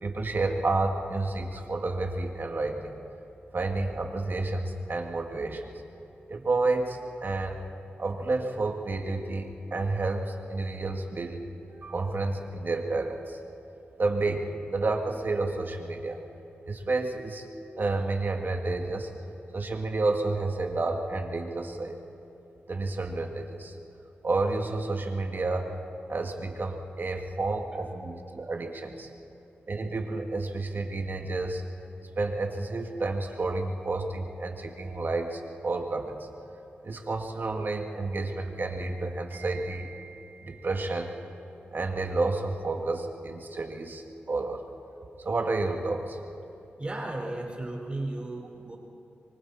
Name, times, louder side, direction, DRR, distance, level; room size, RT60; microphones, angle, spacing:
voice 1, 0.0-2.9 3.5-5.7 6.3-7.6 8.0-11.4 11.8-13.4 14.0-16.2 16.7-17.5 17.8-19.1 19.5-22.0 22.7-23.7 24.2-25.7 26.1-29.1 29.7-31.6 32.2-36.2 36.8-41.1 41.7-44.6 45.2-46.2, right 3 dB, 55° right, 3 dB, 2.2 m, -30 dB
voice 2, 46.8-48.8, right 2 dB, 30° right, 0 dB, 4.8 m, -34 dB
25.0 x 24.0 x 4.4 m, 2.9 s
cardioid pair, 55°, 4 cm